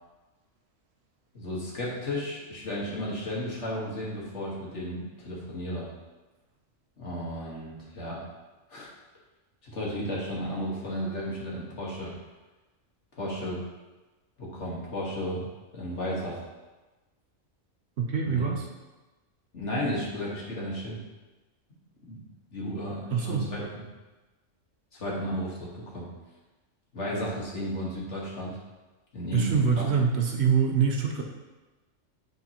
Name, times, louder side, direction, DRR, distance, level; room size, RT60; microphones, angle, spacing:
voice 1, 1.3-5.9 7.0-8.2 8.7-8.9 9.6-12.1 13.2-13.6 14.4-15.5 15.7-16.4 18.2-18.5 19.5-21.0 22.1-22.2 22.5-23.8 24.9-26.1 26.9-28.6 29.1-29.9, equal, 60° left, -5 dB, 1.8 m, -33 dB
voice 2, 18.0-18.7 23.1-23.5 29.3-31.2, right 6 dB, 60° right, 2 dB, 0.8 m, -25 dB
9.3 x 3.8 x 2.9 m, 1.2 s
omnidirectional pair, 1.3 m